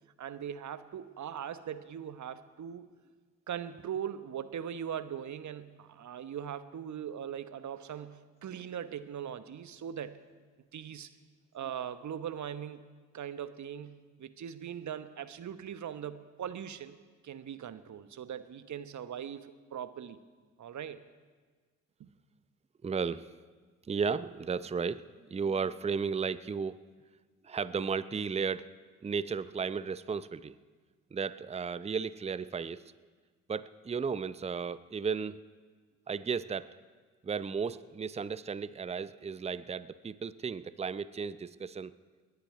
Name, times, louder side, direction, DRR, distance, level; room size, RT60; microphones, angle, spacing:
voice 1, 0.2-2.8 3.5-10.2 10.7-11.1 11.5-12.8 13.1-17.0 17.2-20.2 20.6-21.1 22.0-22.1, right 9 dB, 45° right, 11 dB, 1.1 m, -40 dB
voice 2, 22.8-23.3 23.9-25.0 25.3-26.8 27.4-28.7 29.0-30.6 31.1-32.8 33.5-35.4 36.1-36.7 37.2-41.9, right 5 dB, 15° right, 16 dB, 0.6 m, -34 dB
28.5 x 10.5 x 4.8 m, 1.5 s
hypercardioid pair, 45°, 40 cm